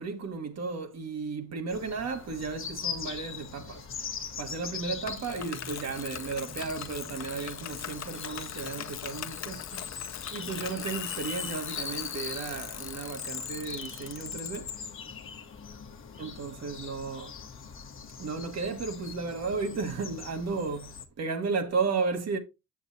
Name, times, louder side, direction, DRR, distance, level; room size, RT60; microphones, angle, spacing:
voice 1, 0.0-3.8 4.4-9.8 10.3-14.8 16.2-17.4 18.2-22.4, right 4 dB, 60° right, 1.5 m, -34 dB
sound 1, 1.7-21.1, left 6 dB, 45° left, 1.1 m, -41 dB
Bicycle, 5.1-14.7, left 10 dB, 60° left, 0.7 m, -40 dB
7.3 x 7.0 x 2.7 m
cardioid pair, 90°, 30 cm